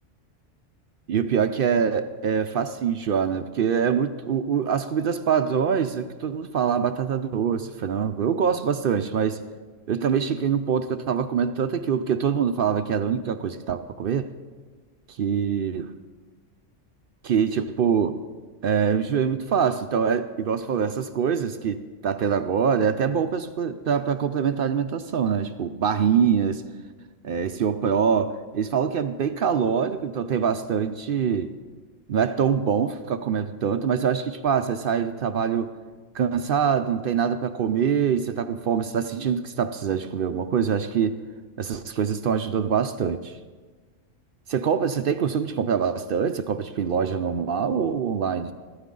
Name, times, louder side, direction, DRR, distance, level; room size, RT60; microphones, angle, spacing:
voice 1, 1.1-9.4 9.9-14.3 15.1-15.9 17.2-18.2 18.6-26.6 27.2-31.5 32.1-35.7 36.1-41.2 41.6-43.4 44.5-48.5, right 7 dB, 60° right, 9 dB, 0.6 m, -24 dB
14.5 x 13.0 x 3.8 m, 1.4 s
omnidirectional pair, 1.3 m